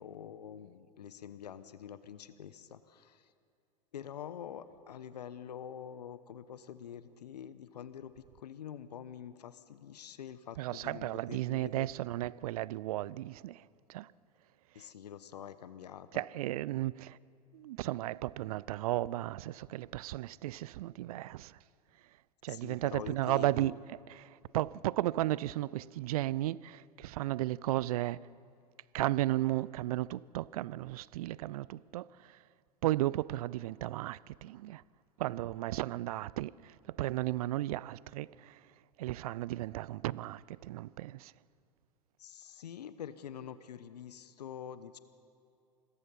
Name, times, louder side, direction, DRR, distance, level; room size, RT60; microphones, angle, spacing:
voice 1, 0.0-3.3 3.9-11.9 14.7-16.3 22.5-23.7 42.2-45.0, left 9 dB, 75° left, 1.0 m, -46 dB
voice 2, 10.6-14.1 16.1-17.2 17.5-21.6 22.4-23.8 24.1-28.3 28.9-32.4 32.8-34.8 35.2-38.6 39.0-41.3, right 16 dB, 60° right, 0.5 m, -34 dB
26.5 x 21.5 x 5.5 m
figure-of-eight pair, 85°, 21 cm